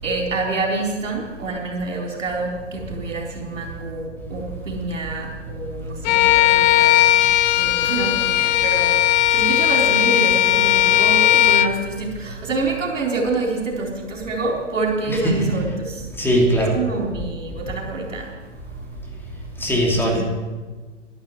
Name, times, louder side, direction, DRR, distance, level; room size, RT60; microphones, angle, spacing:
voice 1, 0.0-7.2 7.5-16.1 16.6-18.8 19.9-20.2, right 3 dB, 85° right, 0 dB, 4.2 m, -27 dB
Bowed string instrument, 6.1-11.8, left 13 dB, 35° left, 0.8 m, -17 dB
voice 2, 16.2-16.7 19.6-20.2, equal, 5° left, -2 dB, 2.9 m, -19 dB
12.0 x 11.5 x 8.0 m, 1.4 s
hypercardioid pair, 125°, 37 cm